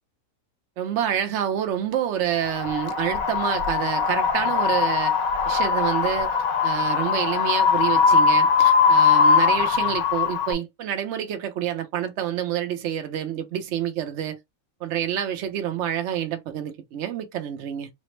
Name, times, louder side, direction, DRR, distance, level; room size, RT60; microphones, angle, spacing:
voice 1, 0.8-5.2 5.4-6.4 6.6-14.4 14.8-17.9, right 10 dB, 60° right, 0.9 m, -28 dB
Wind, 2.4-10.5, left 6 dB, 70° left, 1.1 m, -21 dB
4.1 x 2.0 x 3.1 m
omnidirectional pair, 1.6 m